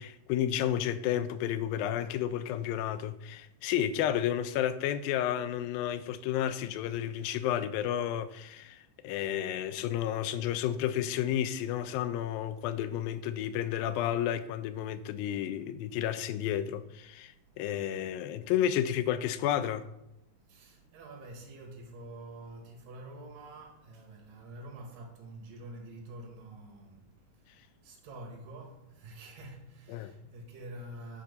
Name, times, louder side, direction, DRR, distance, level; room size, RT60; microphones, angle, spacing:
voice 1, 0.0-19.8 29.9-30.1, left 10 dB, 85° left, 2.3 m, -31 dB
voice 2, 20.5-27.2 27.5-31.2, right 1 dB, 75° right, 3.0 m, -47 dB
10.0 x 4.3 x 5.3 m
omnidirectional pair, 4.1 m